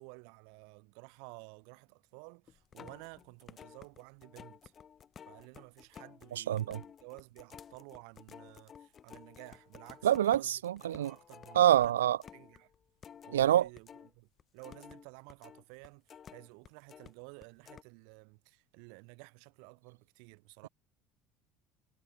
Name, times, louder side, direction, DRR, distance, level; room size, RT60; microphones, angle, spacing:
voice 1, 0.0-4.7 5.3-12.7 13.2-20.7, right 40 dB or more, 70° right, 4.2 m, -53 dB
sound 1, 2.5-14.1 14.4-17.1 17.4-17.8, left 8 dB, 40° left, 2.9 m, -54 dB
voice 2, 6.5-6.8 10.0-11.1 11.6-12.2 13.3-13.7, right 11 dB, 85° right, 0.5 m, -26 dB
hypercardioid pair, 70°, 0 cm